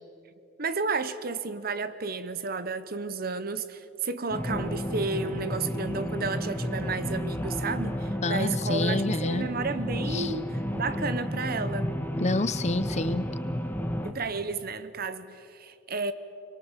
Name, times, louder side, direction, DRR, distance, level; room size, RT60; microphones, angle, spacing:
voice 1, 0.6-11.9 14.0-16.1, right 4 dB, 50° right, 1.0 m, -32 dB
sound 1, 4.3-14.1, equal, 10° left, 1.4 m, -31 dB
voice 2, 8.2-9.5 10.1-10.3 12.2-13.3, left 2 dB, 35° left, 0.8 m, -28 dB
25.5 x 24.0 x 7.4 m
head